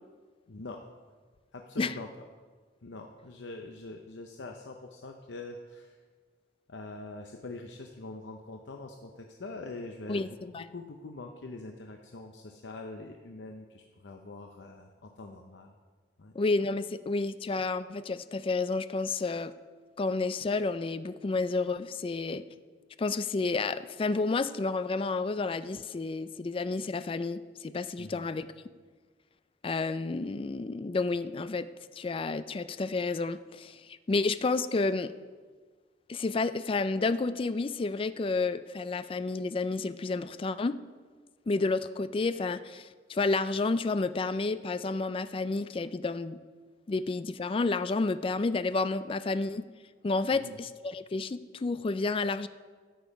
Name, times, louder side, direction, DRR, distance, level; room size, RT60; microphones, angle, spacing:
voice 1, 0.5-0.8 1.5-2.1 2.8-6.0 6.7-15.7 16.2-16.4 28.0-28.2 50.3-50.6, left 2 dB, 80° left, 3 dB, 0.7 m, -44 dB
voice 2, 16.3-19.5 20.0-22.4 23.0-28.5 29.6-31.7 32.0-35.1 36.1-40.8 41.5-46.4 46.9-49.7 50.0-52.5, left 3 dB, 30° left, 13 dB, 0.3 m, -30 dB
13.0 x 7.1 x 5.2 m, 1.5 s
head